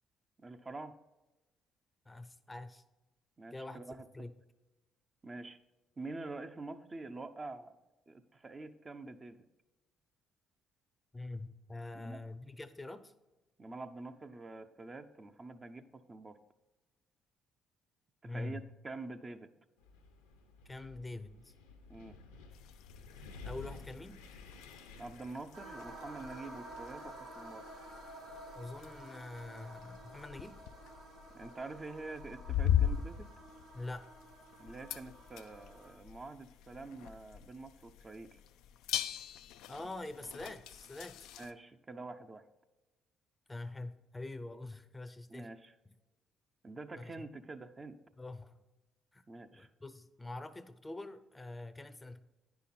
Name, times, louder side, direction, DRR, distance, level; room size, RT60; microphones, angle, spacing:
voice 1, 0.4-1.0 3.4-4.1 5.2-5.6 6.0-7.8 8.1-9.4 11.9-12.2 13.6-16.4 18.2-19.5 21.9-22.2 25.0-27.7 31.3-33.3 34.6-38.4 41.4-42.5 45.3-45.7 46.6-48.0 49.3-49.7, right 3 dB, 30° right, 7 dB, 0.7 m, -46 dB
voice 2, 2.1-2.8 3.5-4.3 11.1-13.1 18.3-18.6 20.6-21.5 23.4-24.2 28.5-30.6 33.7-34.1 39.7-41.3 43.5-45.5 47.0-47.1 48.2-48.6 49.1-49.2 49.5-52.2, left 2 dB, 20° left, 13 dB, 0.6 m, -45 dB
Wind, 19.8-27.1, left 3 dB, 90° left, 1.0 m, -53 dB
sound 1, 22.5-41.5, left 9 dB, 75° left, 0.3 m, -41 dB
sound 2, 25.5-35.9, right 1 dB, 70° right, 3.2 m, -51 dB
9.8 x 5.8 x 4.3 m, 1.1 s
hypercardioid pair, 50°, 0 cm